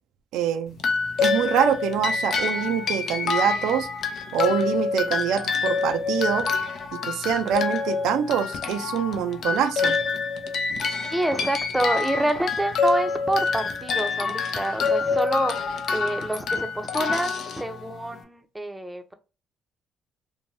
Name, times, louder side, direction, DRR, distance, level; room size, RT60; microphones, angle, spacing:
voice 1, 0.3-0.8 1.2-3.9 4.3-6.5 7.0-10.0, right 8 dB, 80° right, 0.3 m, -25 dB
sound 1, 0.8-18.2, left 4 dB, 60° left, 0.5 m, -27 dB
voice 2, 11.1-19.1, right 1 dB, 10° right, 0.5 m, -27 dB
2.6 x 2.1 x 3.1 m
supercardioid pair, 75°, 0 cm